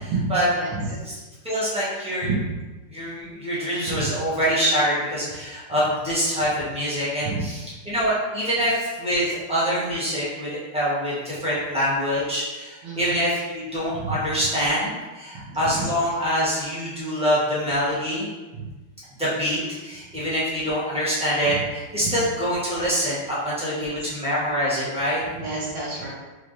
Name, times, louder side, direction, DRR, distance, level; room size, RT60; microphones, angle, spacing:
voice 1, 0.0-0.5 1.0-2.3 2.9-18.3 19.2-25.2, equal, 5° right, -9 dB, 0.5 m, -25 dB
voice 2, 0.5-0.9 2.3-2.5 3.9-4.0 7.3-7.4 12.8-13.0 13.9-14.1 15.5-15.8 25.4-26.1, right 4 dB, 80° right, -6 dB, 1.7 m, -29 dB
4.5 x 3.1 x 2.6 m, 1.2 s
omnidirectional pair, 2.3 m